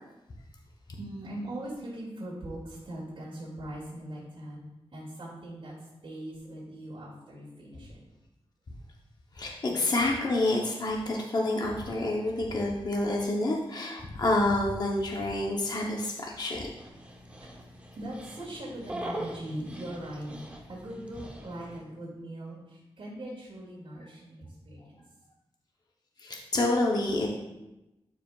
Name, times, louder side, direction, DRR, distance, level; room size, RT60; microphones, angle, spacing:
voice 1, 1.0-4.6 4.9-5.7 6.0-8.0 9.6-9.8 17.4-17.5 18.0-20.4 20.7-25.0, right 1 dB, 60° right, -8 dB, 2.3 m, -40 dB
voice 2, 9.3-16.7 26.2-27.4, left 2 dB, 45° left, -1 dB, 0.8 m, -28 dB
Dog, 16.8-21.8, right 1 dB, 10° right, 0.8 m, -42 dB
12.0 x 5.0 x 2.3 m, 0.96 s
wide cardioid pair, 160°, 10 cm